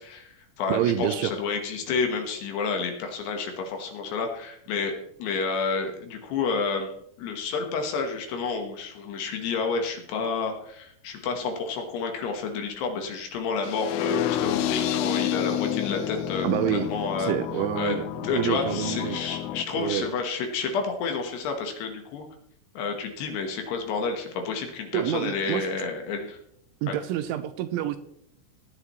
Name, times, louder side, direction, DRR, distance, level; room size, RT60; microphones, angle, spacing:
voice 1, 0.0-6.9 7.2-17.3 17.8-22.3 22.7-26.4 26.9-27.0, left 4 dB, 70° left, 4 dB, 3.0 m, -30 dB
voice 2, 0.7-1.3 16.4-16.9 17.2-18.0 18.3-19.2 19.7-20.1 24.9-25.7 26.8-28.0, right 12 dB, 85° right, 10 dB, 2.8 m, -27 dB
sound 1, 13.6-19.6, left 11 dB, 90° left, 3.3 m, -29 dB
18.0 x 9.6 x 3.1 m, 0.69 s
omnidirectional pair, 5.7 m